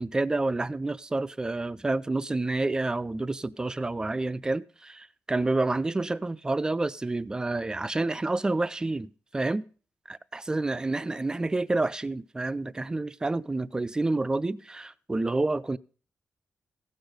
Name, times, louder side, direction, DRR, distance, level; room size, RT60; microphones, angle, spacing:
voice 1, 0.0-9.6 10.1-15.8, right 2 dB, 15° right, 0.4 m, -29 dB
15.5 x 6.2 x 5.0 m
wide cardioid pair, 155°, 5 cm